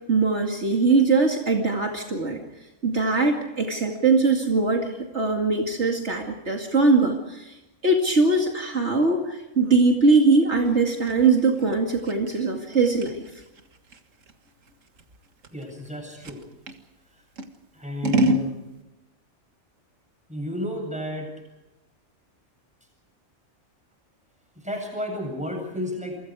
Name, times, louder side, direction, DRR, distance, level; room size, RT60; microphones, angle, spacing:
voice 1, 0.1-2.4 2.8-7.5 7.8-13.2, right 3 dB, 60° right, 2 dB, 2.6 m, -21 dB
Scissors, 10.6-16.8 17.4-18.5, right 1 dB, 90° right, 2.1 m, -29 dB
voice 2, 15.5-16.4 17.7-18.5 20.3-21.3 24.6-26.1, equal, 5° right, 2 dB, 8.0 m, -32 dB
28.5 x 24.5 x 4.9 m, 1.0 s
omnidirectional pair, 1.3 m